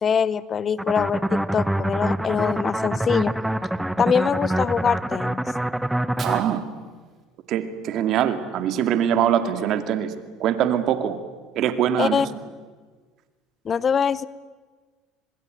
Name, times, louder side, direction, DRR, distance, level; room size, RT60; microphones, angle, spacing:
voice 1, 0.0-3.3 4.0-5.4 12.0-12.3 13.6-14.3, left 7 dB, 35° left, 19 dB, 0.9 m, -23 dB
sound 1, 0.8-6.4, right 1 dB, 5° right, 0.9 m, -25 dB
Fire, 5.9-7.9, right 6 dB, 40° right, 4.6 m, -44 dB
voice 2, 6.2-6.6 7.5-10.1 10.4-11.2 11.5-12.2, right 10 dB, 55° right, 9 dB, 2.4 m, -23 dB
26.5 x 20.5 x 9.3 m, 1.4 s
supercardioid pair, 105°, 0 cm